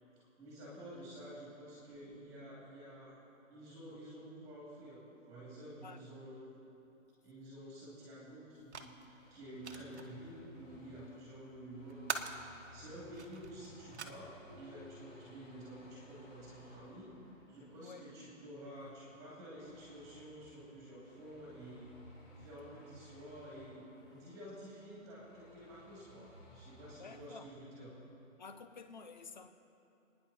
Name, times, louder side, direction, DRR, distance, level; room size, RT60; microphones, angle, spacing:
voice 1, 0.4-3.2 3.5-6.5 7.2-12.3 12.5-17.1 17.5-21.9 22.3-27.9, right 1 dB, 10° right, -7 dB, 2.9 m, -50 dB
voice 2, 5.8-6.2 17.8-18.1 27.0-27.5 28.4-29.5, left 4 dB, 35° left, 9 dB, 0.7 m, -51 dB
sound 1, 8.5-14.0, right 5 dB, 55° right, 1.3 m, -46 dB
sound 2, 9.2-28.0, equal, 10° left, 4.1 m, -60 dB
sound 3, 14.5-16.2, left 1 dB, 35° right, 0.7 m, -61 dB
29.0 x 10.0 x 4.3 m, 3.0 s
hypercardioid pair, 180°, 39 cm